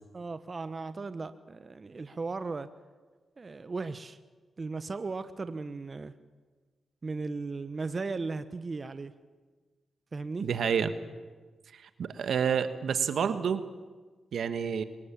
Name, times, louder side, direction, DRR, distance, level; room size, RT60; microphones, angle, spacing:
voice 1, 0.1-2.7 3.4-4.2 4.6-6.1 7.0-9.1 10.1-10.5, right 3 dB, 45° right, 12 dB, 1.0 m, -36 dB
voice 2, 10.4-10.9 12.0-13.6 14.3-14.8, right 7 dB, 75° right, 11 dB, 1.3 m, -28 dB
23.0 x 20.0 x 7.5 m, 1.4 s
supercardioid pair, 45°, 0 cm